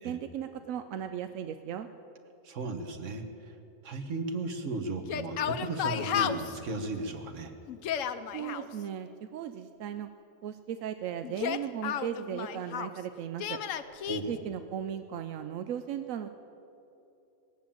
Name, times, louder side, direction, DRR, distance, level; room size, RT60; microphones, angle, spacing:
voice 1, 0.0-1.9 8.3-10.1 10.4-13.6 14.3-16.3, right 9 dB, 90° right, 8 dB, 1.0 m, -37 dB
voice 2, 2.4-3.5 3.8-7.5 14.1-14.4, right 2 dB, 70° right, 6 dB, 1.5 m, -35 dB
Yell, 5.0-6.6 7.7-8.7 11.2-13.0 13.4-14.2, left 9 dB, 80° left, 1.0 m, -33 dB
20.0 x 7.5 x 8.7 m, 2.9 s
omnidirectional pair, 1.3 m